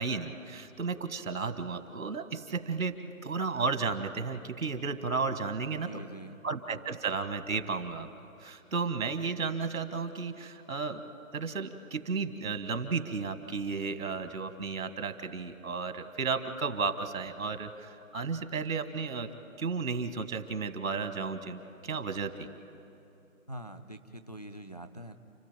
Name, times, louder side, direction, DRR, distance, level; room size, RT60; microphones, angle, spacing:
voice 1, 0.0-3.0 3.2-6.0 6.4-8.1 8.4-11.0 11.3-19.3 19.6-22.5, right 4 dB, 70° right, 9 dB, 1.8 m, -33 dB
voice 2, 5.8-6.4 23.5-25.1, right 1 dB, 30° left, 10 dB, 0.5 m, -44 dB
30.0 x 13.5 x 9.0 m, 2.7 s
hypercardioid pair, 170°, 42 cm